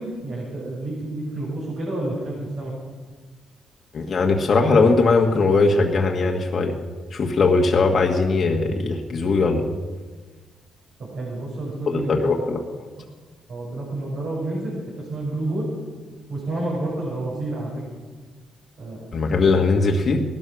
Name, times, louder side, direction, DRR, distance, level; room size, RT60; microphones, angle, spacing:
voice 1, 0.0-2.7 11.1-12.3 13.5-15.7 16.3-17.8 18.8-19.1, right 2 dB, 60° right, -7 dB, 7.0 m, -29 dB
voice 2, 3.9-6.8 7.1-9.7 11.9-12.6 19.1-20.2, left 3 dB, 50° left, 1 dB, 1.6 m, -19 dB
18.0 x 12.5 x 6.3 m, 1.4 s
cardioid pair, 90°, 0 cm